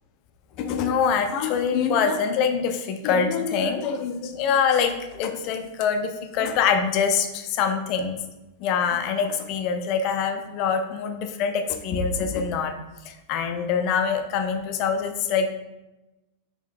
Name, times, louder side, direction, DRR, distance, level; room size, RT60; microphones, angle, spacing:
voice 1, 0.6-8.2 8.6-12.8 13.0-15.5, left 6 dB, 40° left, 6 dB, 0.4 m, -24 dB
4.4 x 2.2 x 3.4 m, 1.0 s
figure-of-eight pair, 90°, 0 cm